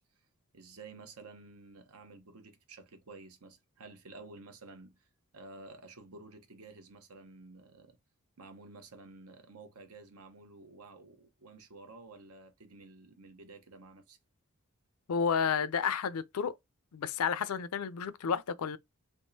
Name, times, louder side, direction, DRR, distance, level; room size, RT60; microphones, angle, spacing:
voice 1, 0.5-5.1 5.3-8.0 8.4-14.2, right 3 dB, 80° right, 1.0 m, -52 dB
voice 2, 15.1-16.5 16.9-18.8, left 6 dB, 75° left, 0.4 m, -31 dB
3.6 x 2.8 x 2.7 m
head